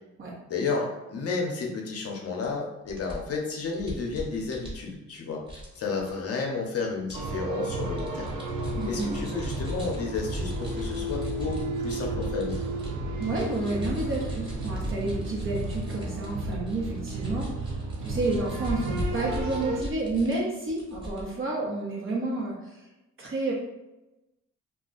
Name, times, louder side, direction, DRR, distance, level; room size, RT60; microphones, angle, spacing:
voice 1, 0.5-5.4 5.8-8.3 8.9-12.6, left 4 dB, 50° left, -1 dB, 0.7 m, -32 dB
sound 1, 2.4-2.5 2.9-5.2 5.5-6.1 7.1-7.3 7.7-12.9 13.2-20.4 20.7-21.2, equal, 15° right, 1.2 m, -39 dB
sound 2, 7.1-19.8, right 2 dB, 90° right, 0.5 m, -33 dB
voice 2, 8.7-9.1 13.2-22.9 23.2-23.5, right 2 dB, 45° right, -2 dB, 0.9 m, -30 dB
2.4 x 2.2 x 3.8 m, 0.99 s
cardioid pair, 90°, 30 cm